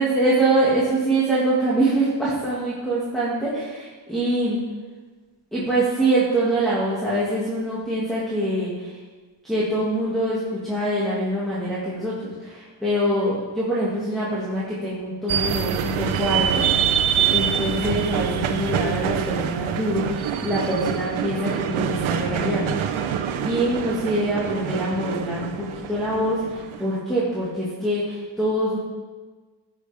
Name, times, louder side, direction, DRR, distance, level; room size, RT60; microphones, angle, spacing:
voice 1, 0.0-4.6 5.5-9.0 9.4-16.7 17.3-22.8 23.1-28.8, right 1 dB, ahead, -9 dB, 2.0 m, -24 dB
sound 1, 15.3-26.9, right 9 dB, 90° right, 0.8 m, -25 dB
16.0 x 6.5 x 3.5 m, 1.4 s
wide cardioid pair, 160°, 46 cm